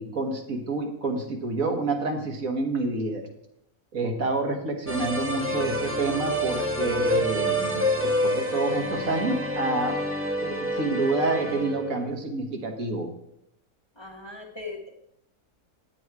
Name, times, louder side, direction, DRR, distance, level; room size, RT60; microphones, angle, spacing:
voice 1, 0.0-3.3 3.9-10.0 10.4-13.1, right 3 dB, 60° right, 3 dB, 1.8 m, -28 dB
sound 1, 4.9-12.0, equal, 10° right, 1.0 m, -27 dB
voice 2, 14.0-14.9, left 3 dB, 20° left, 1 dB, 1.1 m, -39 dB
9.3 x 8.6 x 4.7 m, 0.78 s
omnidirectional pair, 1.6 m